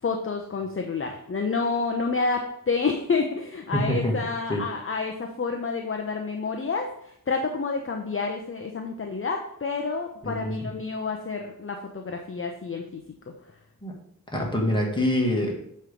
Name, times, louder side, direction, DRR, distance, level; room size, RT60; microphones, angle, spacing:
voice 1, 0.0-13.0, left 4 dB, 35° left, 3 dB, 0.7 m, -29 dB
voice 2, 3.7-4.2 4.5-4.6 10.2-10.5 13.8-13.9 14.3-15.6, left 1 dB, 15° left, -1 dB, 1.7 m, -25 dB
7.4 x 3.2 x 5.1 m, 0.73 s
wide cardioid pair, 80°, 36 cm